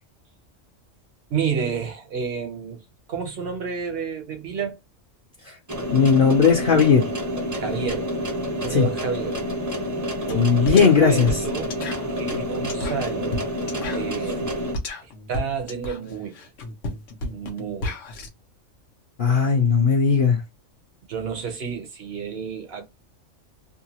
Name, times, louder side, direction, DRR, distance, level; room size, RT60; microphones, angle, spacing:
voice 1, 1.3-4.8 7.5-8.2 8.6-9.4 10.3-11.8 12.2-13.4 13.9-14.6 15.0-16.4 17.3-17.9 21.1-22.8, right 6 dB, 55° right, 0.9 m, -30 dB
sound 1, 5.7-14.7, equal, 20° right, 0.6 m, -28 dB
voice 2, 5.9-7.0 8.7-8.9 10.3-11.3 19.2-20.4, left 6 dB, 50° left, 0.8 m, -17 dB
sound 2, 10.3-10.4 10.7-18.3, left 1 dB, 70° left, 1.1 m, -33 dB
2.7 x 2.2 x 2.8 m
omnidirectional pair, 1.3 m